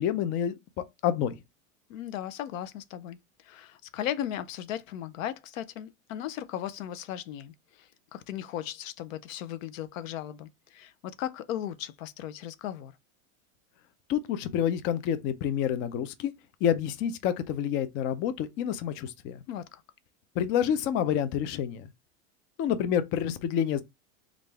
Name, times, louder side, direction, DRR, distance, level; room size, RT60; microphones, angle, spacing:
voice 1, 0.0-1.4 14.1-16.3 16.6-19.4 20.4-21.9 22.6-23.8, left 9 dB, 30° left, 0.4 m, -28 dB
voice 2, 1.9-12.9 19.5-19.8, left 11 dB, 75° left, 0.6 m, -37 dB
3.3 x 2.5 x 3.3 m
supercardioid pair, 120°, 40 cm